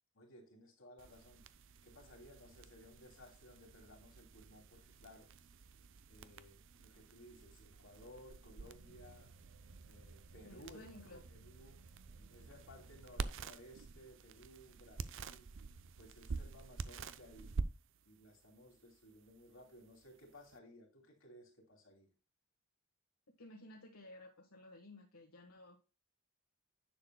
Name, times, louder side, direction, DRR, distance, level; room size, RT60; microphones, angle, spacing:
voice 1, 0.1-1.4 1.8-5.3 6.1-9.3 9.8-11.8 12.1-15.5 16.0-17.6 18.0-22.1, equal, 65° left, 2.8 m, -59 dB
sound 1, 1.0-20.6, right 4 dB, 60° right, 0.5 m, -48 dB
voice 2, 10.4-11.2 23.4-25.8, left 1 dB, 80° left, 1.4 m, -55 dB
10.5 x 6.9 x 2.2 m
head